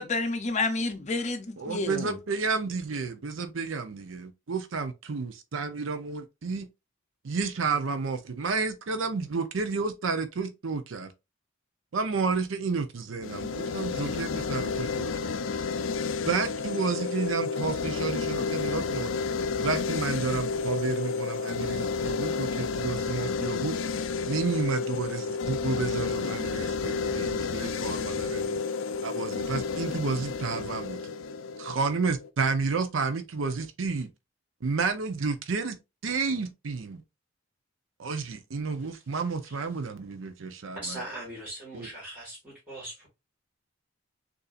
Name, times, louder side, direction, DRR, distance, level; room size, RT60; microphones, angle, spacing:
voice 1, 0.0-2.1, left 3 dB, 35° left, 0.6 m, -29 dB
voice 2, 1.6-6.7 7.2-11.1 11.9-15.3 16.2-19.1 19.6-23.8 24.3-28.6 29.0-31.0 31.6-34.1 34.6-37.0 38.0-41.0 41.7-41.9, right 4 dB, 80° right, 0.6 m, -31 dB
sound 1, 13.2-32.3, left 5 dB, 80° left, 0.4 m, -31 dB
voice 3, 40.7-43.1, right 1 dB, 10° right, 1.8 m, -40 dB
6.6 x 2.7 x 2.4 m
head